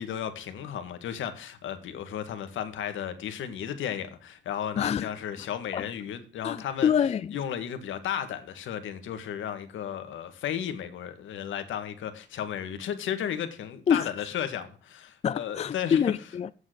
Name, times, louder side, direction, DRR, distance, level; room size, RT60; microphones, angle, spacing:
voice 1, 0.0-6.9 7.3-16.1, left 9 dB, 75° left, 1.8 m, -34 dB
voice 2, 4.8-5.1 5.7-5.8 6.4-7.4 13.9-14.1 15.2-16.5, left 8 dB, 35° left, 0.4 m, -26 dB
8.4 x 7.5 x 6.7 m
cardioid pair, 90°, 20 cm